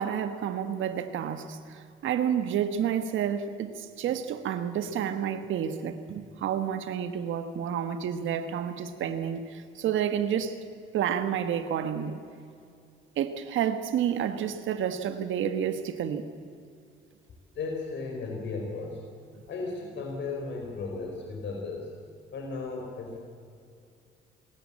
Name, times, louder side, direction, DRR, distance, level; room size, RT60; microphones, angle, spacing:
voice 1, 0.0-10.6 10.9-12.2 13.2-16.3, right 9 dB, 80° right, 1.4 m, -30 dB
voice 2, 17.5-19.0 19.5-21.9 22.3-23.2, left 3 dB, 65° left, 4.1 m, -35 dB
27.5 x 14.0 x 8.7 m
cardioid pair, 90°, 20 cm